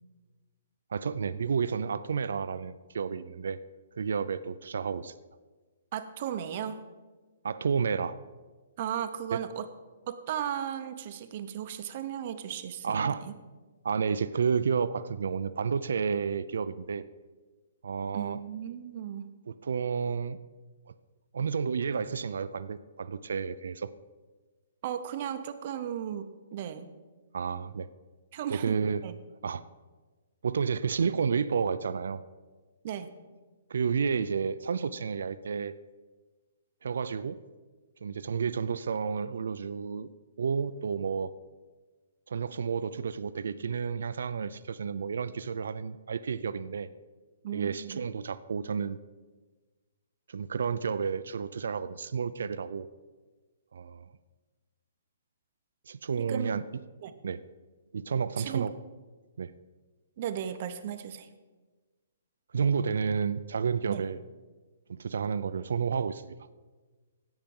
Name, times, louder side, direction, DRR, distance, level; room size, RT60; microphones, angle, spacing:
voice 1, 0.9-3.6 4.0-5.1 7.4-8.1 9.3-9.4 12.8-13.2 13.8-17.0 17.8-18.4 19.5-20.4 21.3-23.9 27.3-27.9 28.5-29.0 29.4-29.6 30.4-32.2 33.7-35.7 36.8-37.4 38.0-40.1 40.4-41.3 42.3-46.9 47.5-49.0 50.3-52.9 53.7-54.1 55.9-56.6 57.2-57.4 57.9-58.7 59.4-59.5 62.5-64.2 64.9-66.4, right 6 dB, 70° right, 14 dB, 0.4 m, -31 dB
voice 2, 5.9-6.8 8.8-9.7 10.1-13.4 18.1-19.3 24.8-26.9 28.3-28.7 29.0-29.2 32.8-33.1 47.4-48.0 56.2-56.6 57.0-57.2 58.4-58.7 60.2-61.3 63.9-64.0, right 10 dB, 30° right, 10 dB, 0.7 m, -36 dB
16.0 x 5.9 x 5.3 m, 1.3 s
hypercardioid pair, 175°, 0 cm